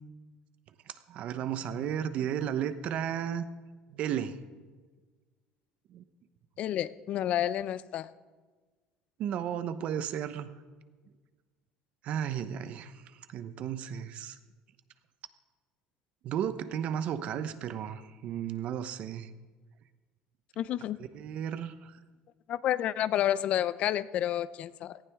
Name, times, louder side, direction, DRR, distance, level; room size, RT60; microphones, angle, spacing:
voice 1, 0.9-3.5 3.9-4.4 5.9-6.0 9.2-10.5 12.0-12.9 13.3-14.4 16.2-19.3 21.1-21.9, right 9 dB, 55° right, 12 dB, 0.9 m, -34 dB
voice 2, 6.6-8.1 20.6-21.0 22.5-25.0, left 11 dB, 50° left, 17 dB, 0.5 m, -30 dB
18.0 x 15.0 x 3.6 m, 1.4 s
cardioid pair, 130°, 3 cm